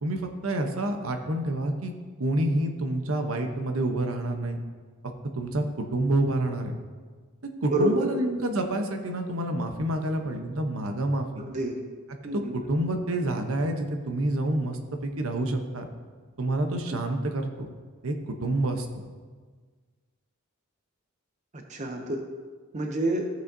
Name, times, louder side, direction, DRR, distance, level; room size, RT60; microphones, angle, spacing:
voice 1, 0.0-1.9 2.2-4.6 5.0-6.8 7.6-11.4 12.2-15.9 16.4-17.5 18.0-18.9, right 1 dB, 70° right, 5 dB, 0.9 m, -28 dB
voice 2, 7.7-8.2 11.4-11.8 12.2-12.5 16.9-17.0 21.7-22.2 22.7-23.3, right 1 dB, 35° right, 3 dB, 0.7 m, -28 dB
14.5 x 6.2 x 2.7 m, 1.5 s
head